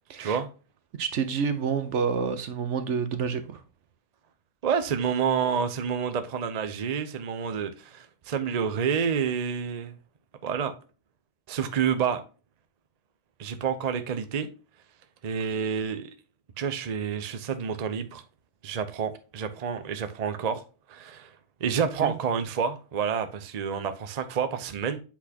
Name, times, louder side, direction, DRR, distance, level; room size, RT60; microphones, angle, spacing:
voice 1, 1.0-3.6 22.0-22.1, right 6 dB, 60° right, 1.0 m, -28 dB
voice 2, 4.6-9.9 10.4-10.7 11.5-12.2 13.4-14.5 15.2-16.1 16.6-18.2 18.6-20.6 20.9-21.3 21.6-25.0, right 7 dB, 45° right, 0.5 m, -28 dB
8.2 x 4.1 x 2.8 m
omnidirectional pair, 1.5 m